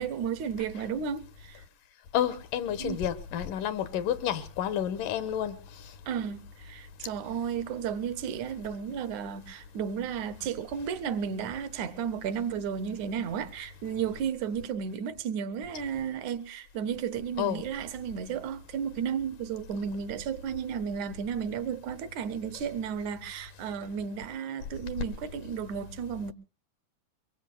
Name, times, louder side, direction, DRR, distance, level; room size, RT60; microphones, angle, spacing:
voice 1, 0.0-1.6 2.8-3.0 6.1-26.3, right 7 dB, 70° right, 2.1 m, -33 dB
voice 2, 2.1-5.6 17.4-17.6, left 10 dB, 80° left, 2.6 m, -30 dB
23.5 x 22.0 x 2.2 m
omnidirectional pair, 3.8 m